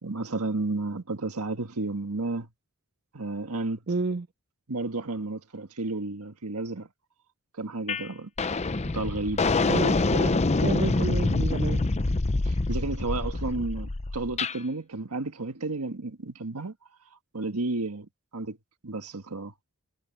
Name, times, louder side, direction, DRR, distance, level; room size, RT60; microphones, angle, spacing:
voice 1, 0.0-2.5 3.1-3.8 4.7-6.9 7.6-8.3 8.8-9.4 12.4-16.7 17.3-18.6 18.8-19.5, right 3 dB, 80° right, 1.6 m, -32 dB
voice 2, 3.9-4.3 9.7-11.9, right 3 dB, 45° right, 0.5 m, -30 dB
sound 1, 7.9-8.1 8.4-14.6, left 3 dB, 30° left, 0.6 m, -26 dB
head